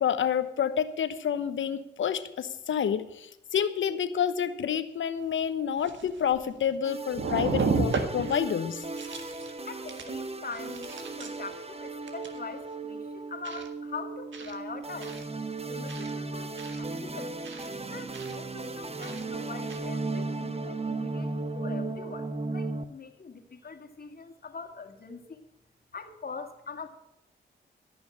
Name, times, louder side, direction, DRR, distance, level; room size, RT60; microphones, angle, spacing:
voice 1, 0.0-8.8, left 8 dB, 75° left, 12 dB, 1.0 m, -29 dB
sound 1, 5.2-5.3 5.8-6.8 7.1-8.4 8.8-9.5 9.9-10.1 10.5-11.5 12.1-12.4 13.4-13.7 14.3-14.6 15.0-15.2 15.9-16.1 16.6-16.8 17.4-17.7 18.1-18.4 19.0-19.2 19.7-19.8, right 4 dB, 70° right, 1.7 m, -33 dB
sound 2, 6.8-22.8, right 3 dB, 30° right, 1.2 m, -36 dB
voice 2, 9.7-15.2 15.6-17.4 17.9-25.5 25.9-26.9, left 4 dB, 50° left, 6 dB, 2.1 m, -43 dB
14.0 x 6.3 x 8.6 m, 0.88 s
supercardioid pair, 45°, 20 cm